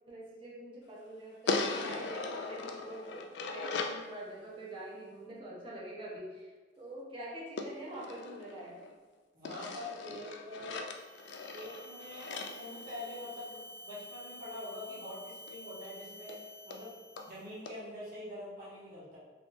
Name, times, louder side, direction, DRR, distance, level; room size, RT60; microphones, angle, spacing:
voice 1, 0.1-8.8, right 1 dB, 30° right, -5 dB, 0.8 m, -45 dB
sound 1, 1.5-4.1 7.6-9.0 9.4-13.6 15.5-15.6 15.9-16.0 16.3-16.4 16.7-16.8 17.2-17.3 17.7-17.8, left 3 dB, 70° left, 0.3 m, -39 dB
voice 2, 9.3-10.8 11.5-16.4 16.6-19.2, left 1 dB, 50° right, -9 dB, 1.3 m, -45 dB
sound 2, 10.9-17.5, equal, 85° right, 0.7 m, -50 dB
2.9 x 2.4 x 3.7 m, 1.4 s
head